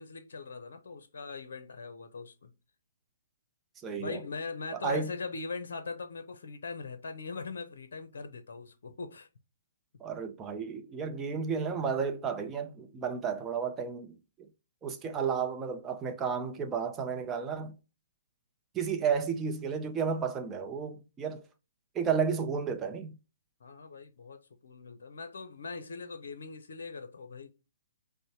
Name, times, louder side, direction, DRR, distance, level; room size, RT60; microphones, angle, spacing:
voice 1, 0.0-2.5 4.0-9.3 23.6-27.5, left 4 dB, 70° left, 0.6 m, -41 dB
voice 2, 3.8-4.2 4.7-5.1 10.0-14.5 14.8-17.7 18.7-21.4 21.9-23.2, right 6 dB, 20° right, 0.6 m, -32 dB
5.3 x 2.1 x 3.0 m
hypercardioid pair, 140°, 0 cm